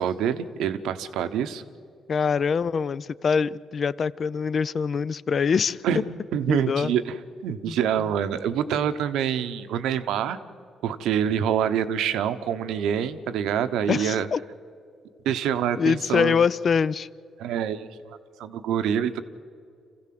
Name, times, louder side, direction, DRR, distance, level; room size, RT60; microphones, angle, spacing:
voice 1, 0.0-1.6 5.8-6.0 6.3-7.2 7.4-10.4 10.8-14.3 15.2-16.4 17.4-18.0 18.4-19.2, right 9 dB, 85° right, 1.0 m, -26 dB
voice 2, 2.1-5.8 6.5-6.9 7.7-7.8 13.9-14.4 15.8-17.1, left 6 dB, 50° left, 0.5 m, -24 dB
27.0 x 15.5 x 7.7 m
cardioid pair, 90°, 0 cm